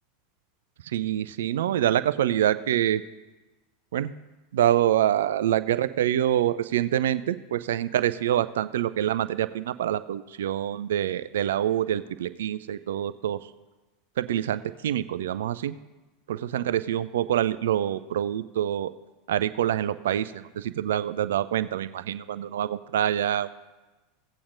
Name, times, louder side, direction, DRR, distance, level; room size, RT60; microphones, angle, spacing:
voice 1, 0.9-3.0 3.9-4.1 4.5-13.4 14.2-15.7 16.3-18.9 19.3-23.5, right 11 dB, 65° right, 14 dB, 0.4 m, -26 dB
17.0 x 8.5 x 2.5 m, 1.1 s
figure-of-eight pair, 80°, 0 cm